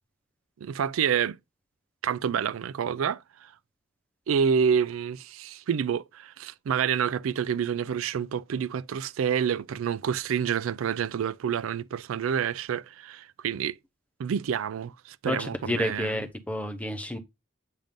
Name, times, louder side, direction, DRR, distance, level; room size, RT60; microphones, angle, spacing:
voice 1, 0.6-1.4 2.0-3.5 4.3-13.8 14.2-16.2, right 7 dB, 90° right, 0.4 m, -28 dB
voice 2, 15.3-17.2, left 1 dB, 5° left, 0.8 m, -30 dB
7.5 x 2.5 x 5.1 m
head